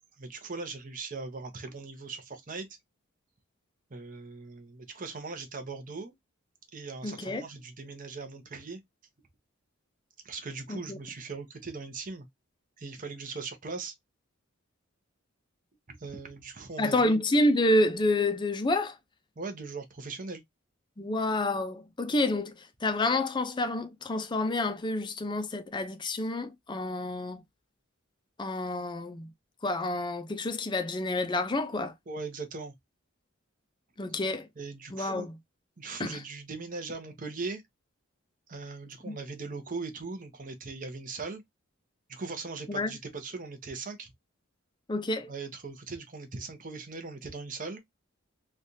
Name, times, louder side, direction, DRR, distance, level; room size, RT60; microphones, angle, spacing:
voice 1, 0.2-2.7 3.9-6.1 6.7-8.8 10.2-12.2 12.8-13.9 15.9-17.2 19.4-20.4 32.1-32.7 34.6-35.3 35.8-37.6 38.5-41.4 42.1-44.1 45.3-47.8, right 4 dB, 40° right, 0.8 m, -39 dB
voice 2, 7.0-7.4 10.7-11.0 16.8-19.0 21.0-27.4 28.4-29.3 29.6-31.9 34.0-34.5 34.9-35.4 36.0-36.2 39.0-39.1 42.7-42.9 44.9-45.3, left 2 dB, 20° left, 0.5 m, -29 dB
3.3 x 2.4 x 2.6 m
head